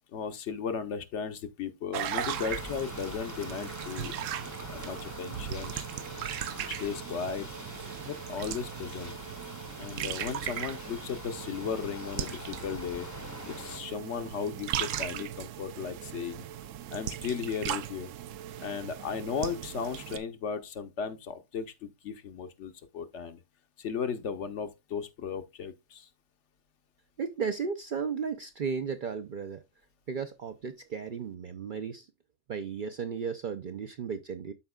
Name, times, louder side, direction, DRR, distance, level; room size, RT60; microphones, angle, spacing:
voice 1, 0.1-4.1 4.7-5.8 6.6-7.5 8.1-9.1 9.8-13.1 13.5-16.5 16.9-18.1 18.6-23.4 23.8-26.1, left 6 dB, 65° left, 1.1 m, -36 dB
sound 1, 1.9-20.2, right 10 dB, 75° right, 0.9 m, -38 dB
sound 2, 2.1-13.8, left 2 dB, 20° left, 0.6 m, -44 dB
voice 2, 27.2-29.6 30.1-32.1 32.5-34.5, right 6 dB, 55° right, 0.5 m, -34 dB
13.0 x 4.5 x 2.2 m
omnidirectional pair, 1.3 m